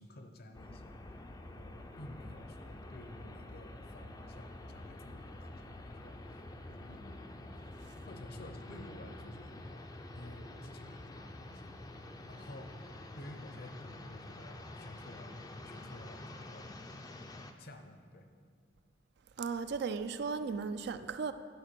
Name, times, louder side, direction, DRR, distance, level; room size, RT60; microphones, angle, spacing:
voice 1, 0.0-6.5 6.7-7.4 8.0-11.9 12.2-15.4 15.6-16.8 17.6-18.3, left 1 dB, 55° left, 0.7 m, -52 dB
sound 1, 0.5-17.5, left 1 dB, 20° left, 0.4 m, -48 dB
voice 2, 19.4-21.3, right 5 dB, 60° right, 0.4 m, -36 dB
10.0 x 4.3 x 6.1 m
head